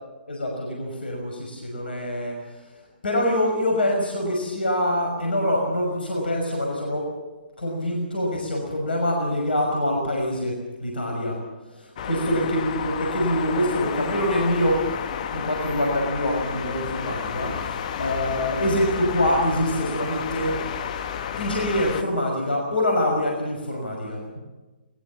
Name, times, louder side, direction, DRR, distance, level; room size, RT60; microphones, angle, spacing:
voice 1, 0.3-2.6 3.0-7.2 7.6-11.4 11.7-14.9 15.3-20.6 21.4-24.4, left 1 dB, 70° left, 1 dB, 5.9 m, -25 dB
sound 1, 12.0-22.0, left 8 dB, 45° left, 1.6 m, -31 dB
21.5 x 20.0 x 7.5 m, 1.2 s
figure-of-eight pair, 125°, 6 cm